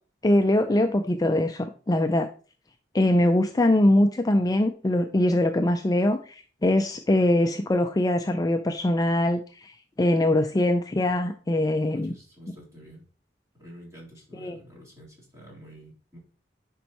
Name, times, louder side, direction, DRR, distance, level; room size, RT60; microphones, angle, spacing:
voice 1, 0.2-2.3 2.9-12.1 14.4-14.6, left 1 dB, 20° left, 7 dB, 0.4 m, -22 dB
voice 2, 11.9-13.0 13.6-16.2, equal, 20° right, -6 dB, 3.7 m, -48 dB
10.0 x 5.3 x 3.0 m, 0.40 s
head